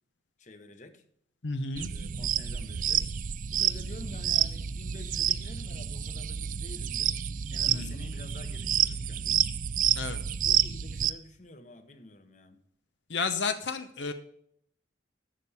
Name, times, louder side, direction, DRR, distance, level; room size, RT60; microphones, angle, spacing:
voice 1, 0.4-1.0 1.9-3.1 3.5-7.2 7.5-9.5 10.4-12.6, left 2 dB, 40° left, 1.0 m, -48 dB
voice 2, 1.4-1.9 7.7-8.0 9.9-10.2 13.1-14.1, left 4 dB, 80° left, 0.8 m, -32 dB
sound 1, 1.8-11.1, right 10 dB, 45° right, 0.4 m, -29 dB
11.0 x 6.9 x 5.7 m
head